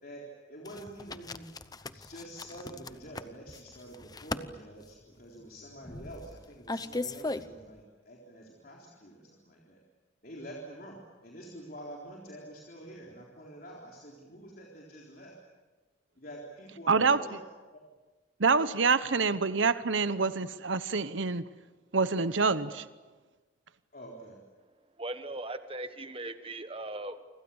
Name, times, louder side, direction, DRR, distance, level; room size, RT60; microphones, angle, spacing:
voice 1, 0.5-1.5 1.9-9.8 10.2-15.3 16.2-17.4 17.7-17.8 19.2-19.3 23.9-24.4, right 1 dB, 45° left, -1 dB, 4.0 m, -47 dB
sound 1, 0.6-7.8, left 2 dB, 20° left, 0.7 m, -39 dB
voice 2, 16.9-17.2 18.4-21.4 21.9-22.8, right 4 dB, 70° right, 14 dB, 1.0 m, -26 dB
voice 3, 25.0-27.2, right 2 dB, 30° right, 10 dB, 1.3 m, -39 dB
29.0 x 25.5 x 7.2 m, 1.3 s
head